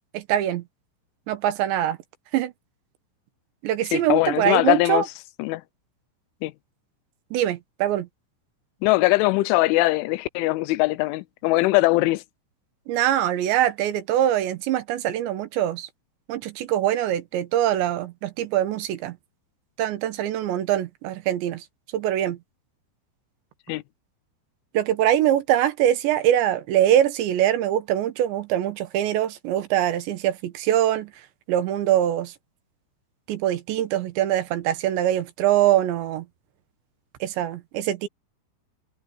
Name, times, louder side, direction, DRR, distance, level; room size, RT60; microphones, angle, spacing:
voice 1, 0.1-0.6 1.3-2.0 2.3-2.5 3.6-5.1 7.3-8.1 12.9-15.9 16.3-19.2 19.8-21.6 21.9-22.4 24.7-31.1 31.5-32.3 33.3-36.3 37.2-38.1, right 12 dB, 75° right, 3.4 m, -23 dB
voice 2, 3.9-5.0 5.4-5.6 6.4-6.5 8.8-12.2 23.7-23.8, left 20 dB, 90° left, 3.1 m, -21 dB
omnidirectional pair, 5.4 m